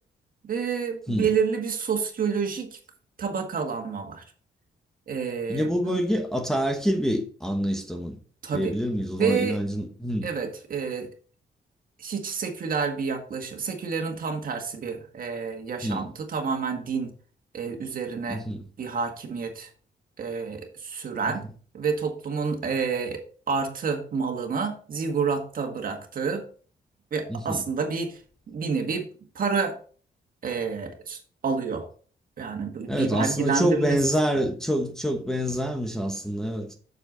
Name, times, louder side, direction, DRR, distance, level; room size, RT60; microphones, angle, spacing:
voice 1, 0.4-2.8 3.2-4.2 5.1-6.0 8.4-8.8 9.2-9.6 10.2-11.1 12.0-17.1 17.5-18.4 18.8-19.7 20.2-21.4 21.7-23.2 23.5-26.4 27.1-28.2 28.5-29.1 29.4-29.8 30.4-31.9 32.4-34.0, right 5 dB, 50° right, 1.7 m, -29 dB
voice 2, 5.5-8.2 8.5-10.3 15.8-16.1 18.3-18.6 21.3-21.4 27.3-27.6 32.9-36.7, equal, 5° left, 1.1 m, -26 dB
7.8 x 6.8 x 3.8 m
wide cardioid pair, 140°, 18 cm